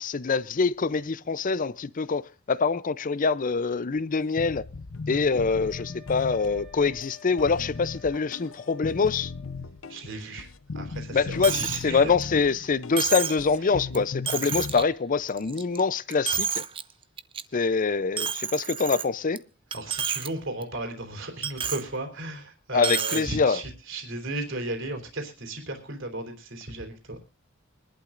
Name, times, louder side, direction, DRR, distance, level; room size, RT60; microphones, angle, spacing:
voice 1, 0.0-2.2 2.5-4.6 5.1-9.3 11.1-16.6 17.5-19.4 22.7-23.6, left 4 dB, 40° left, 0.5 m, -25 dB
sound 1, 4.4-14.8, left 4 dB, 85° left, 0.7 m, -38 dB
Wind instrument woodwind instrument, 5.4-9.7, left 6 dB, ahead, 1.8 m, -51 dB
voice 2, 9.9-10.5 10.7-12.3 12.9-13.0 17.6-17.7 19.7-27.2, right 2 dB, 65° right, 3.5 m, -35 dB
Coin (dropping), 11.4-11.8 12.2-12.3 13.0-13.4 13.9-14.0 14.3-14.8 15.3-15.8 16.1-16.8 17.2-17.4 18.2-19.4 19.7-20.3 20.6-20.7 21.4-21.8 22.8-23.2, right 7 dB, 25° right, 0.6 m, -29 dB
23.5 x 11.5 x 2.5 m
head